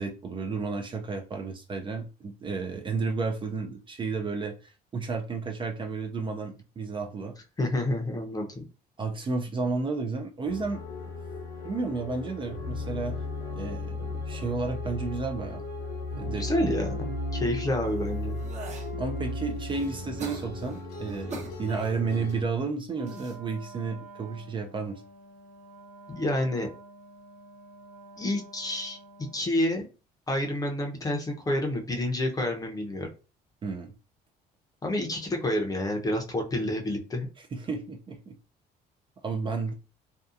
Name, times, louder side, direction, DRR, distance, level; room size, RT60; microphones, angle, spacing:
voice 1, 0.0-7.4 9.0-10.8 11.6-13.2 13.5-15.6 16.2-16.5 18.9-25.0 33.6-33.9 37.5-38.4 39.2-39.7, right 4 dB, 30° right, 0.4 m, -32 dB
voice 2, 7.6-8.6 16.4-17.0 17.3-18.4 26.1-26.7 28.2-29.9 30.3-33.1 34.8-37.3, left 1 dB, 20° left, 0.7 m, -29 dB
sound 1, 10.4-22.4, left 2 dB, 65° left, 0.8 m, -35 dB
sound 2, 17.8-18.9 19.4-22.3 22.9-23.3 24.2-24.5, right 3 dB, 45° right, 0.9 m, -43 dB
Wind instrument woodwind instrument, 22.9-29.5, right 3 dB, 85° right, 1.1 m, -49 dB
2.6 x 2.3 x 2.4 m
cardioid pair, 110°, 17 cm